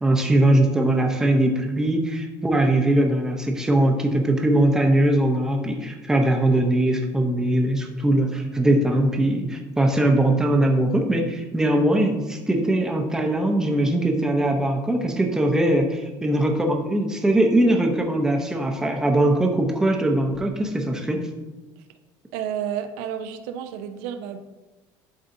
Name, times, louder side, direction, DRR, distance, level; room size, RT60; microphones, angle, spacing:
voice 1, 0.0-21.2, right 1 dB, 5° right, 2 dB, 0.6 m, -21 dB
voice 2, 22.3-24.4, right 9 dB, 85° right, 8 dB, 0.5 m, -31 dB
11.5 x 4.0 x 2.6 m, 1.1 s
cardioid pair, 160°, 8 cm